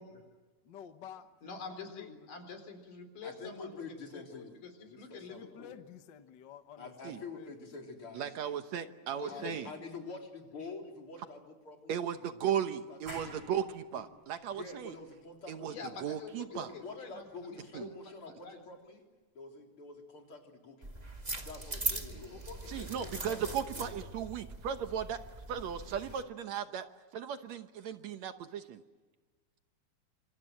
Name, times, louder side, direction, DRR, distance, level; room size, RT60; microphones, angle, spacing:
voice 1, 0.7-1.3 1.8-2.1 5.3-7.7 9.0-9.6, left 9 dB, 60° left, 1.2 m, -51 dB
voice 2, 1.4-5.7 9.2-9.8 15.7-17.6 18.4-18.6 21.7-23.8, left 5 dB, 85° left, 5.5 m, -47 dB
voice 3, 3.2-5.6 6.8-8.3 9.3-12.0 12.4-12.5 12.9-13.4 14.5-15.9 16.5-19.1 19.3-21.1 21.4-22.4 23.3-23.4 23.8-23.9, left 3 dB, 40° left, 4.7 m, -47 dB
voice 4, 8.1-9.7 11.9-14.9 15.5-16.7 17.7-17.9 22.7-25.2 25.5-26.9 27.1-28.8, right 9 dB, 70° right, 2.2 m, -36 dB
sound 1, 13.1-18.4, right 1 dB, 40° right, 8.8 m, -54 dB
sound 2, 20.8-26.2, right 2 dB, 20° right, 1.4 m, -41 dB
27.0 x 26.5 x 7.7 m
omnidirectional pair, 3.6 m